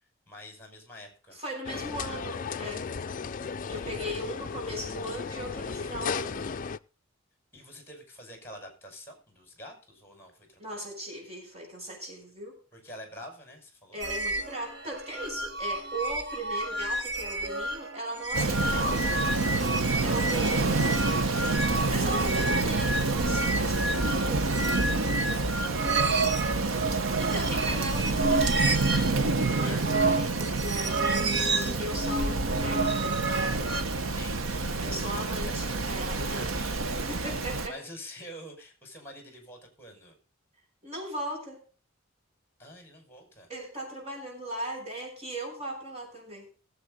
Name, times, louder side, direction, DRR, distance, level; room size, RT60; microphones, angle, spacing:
voice 1, 0.3-1.4 3.8-4.1 7.5-10.9 12.7-14.0 20.1-21.0 25.0-26.5 29.6-30.6 33.9-35.5 36.3-37.3 37.7-40.2 42.6-43.5, left 1 dB, 10° left, 4 dB, 5.5 m, -48 dB
voice 2, 1.3-2.9 3.7-6.5 10.6-12.5 13.9-19.1 20.0-21.1 21.9-24.5 27.0-28.8 29.4-33.7 34.8-36.6 36.9-37.8 40.8-41.6 43.5-46.5, right 1 dB, 30° right, 0 dB, 6.4 m, -38 dB
sound 1, 1.6-6.8, left 5 dB, 40° left, 0.5 m, -35 dB
sound 2, 14.0-33.8, right 2 dB, 60° right, 1.7 m, -31 dB
Rain, 18.3-37.7, right 3 dB, 85° right, 1.1 m, -28 dB
20.0 x 8.1 x 3.9 m, 0.36 s
head